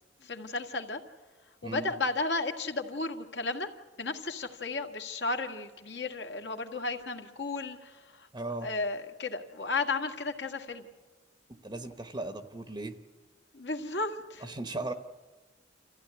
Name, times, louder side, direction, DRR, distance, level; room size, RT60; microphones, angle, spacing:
voice 1, 0.2-1.0 1.6-3.7 4.0-8.3 8.6-10.9 13.5-14.4, left 3 dB, 65° left, 4 dB, 1.8 m, -34 dB
voice 2, 8.3-8.7 11.6-13.0 14.4-14.9, right 2 dB, 25° right, 8 dB, 1.0 m, -37 dB
27.5 x 15.0 x 9.5 m, 1.3 s
head